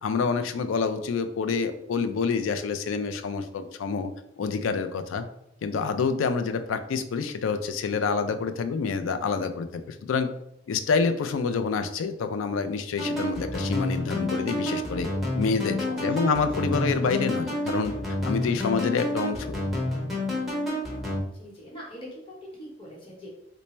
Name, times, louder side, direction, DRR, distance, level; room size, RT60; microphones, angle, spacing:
voice 1, 0.0-4.1 4.4-5.3 5.6-10.3 10.7-15.1 15.3-17.9 18.2-19.6, left 5 dB, 80° left, 9 dB, 0.4 m, -27 dB
sound 1, 13.0-21.2, left 1 dB, ahead, 0.7 m, -29 dB
voice 2, 15.8-16.8 18.3-18.6 21.4-23.3, equal, 30° left, -5 dB, 1.0 m, -43 dB
3.3 x 2.0 x 4.1 m, 0.78 s
head